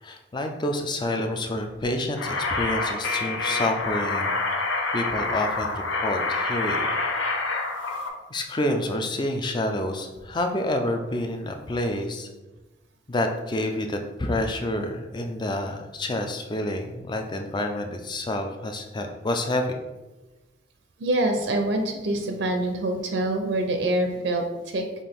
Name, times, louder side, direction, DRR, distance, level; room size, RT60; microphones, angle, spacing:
voice 1, 0.0-4.3 4.9-6.9 8.3-12.3 13.1-19.8, left 1 dB, 25° left, 4 dB, 0.4 m, -28 dB
sound 1, 2.2-8.1, left 3 dB, 85° left, 0.6 m, -27 dB
voice 2, 21.0-24.9, right 1 dB, 65° right, 4 dB, 0.5 m, -25 dB
5.7 x 2.5 x 3.5 m, 1.1 s
head